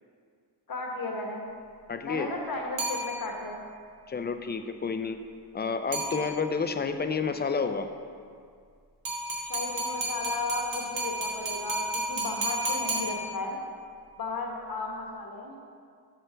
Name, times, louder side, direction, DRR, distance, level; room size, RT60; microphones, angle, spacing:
voice 1, 0.7-1.5 2.0-3.6 9.4-13.6 14.2-15.6, left 3 dB, 55° left, 1 dB, 1.2 m, -35 dB
voice 2, 1.9-2.3 4.1-5.2 5.5-7.9, left 5 dB, 25° left, 8 dB, 0.4 m, -30 dB
sound 1, 2.8-3.6 5.9-6.7 9.1-13.7, right 1 dB, 90° right, 1.6 m, -32 dB
7.7 x 6.2 x 3.3 m, 2.2 s
cardioid pair, 75°, 42 cm